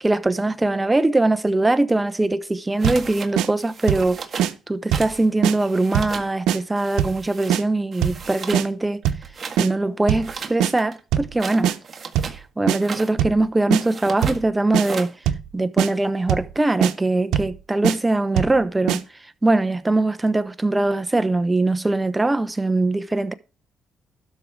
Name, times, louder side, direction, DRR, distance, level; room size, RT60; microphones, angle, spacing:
voice 1, 0.0-4.2 4.7-9.0 9.6-11.7 12.6-15.1 15.5-19.0 19.4-23.3, right 2 dB, 15° right, 0.9 m, -21 dB
sound 1, 2.8-3.3 3.6-4.5 4.9-5.3 5.5-6.3 6.8-7.5 7.9-8.7 9.0-9.6 10.2-12.4 12.7-13.1 13.8-14.4 14.7-15.1, right 5 dB, 40° right, 1.8 m, -35 dB
sound 2, 2.8-3.1 3.4-3.5 3.9-4.1 4.4-4.5 4.9-5.1 5.4-5.6 5.9-6.2 6.5-6.6 7.0-7.2 7.5-7.6 8.0-8.2 8.5-8.7 9.0-9.3 9.6-9.7 10.1-10.3 10.6-10.7 11.1-11.3 11.6-11.8 12.1-12.4 12.7-12.8 13.2-13.4 13.7-13.8 14.2-14.4 14.7-14.9 15.3-15.5 15.8-15.9 16.3-16.5 16.8-16.9 17.3-17.5 17.8-18.0 18.4-18.6 18.9-19.0, right 10 dB, 85° right, 0.9 m, -21 dB
12.5 x 4.9 x 6.0 m
cardioid pair, 90°, 0 cm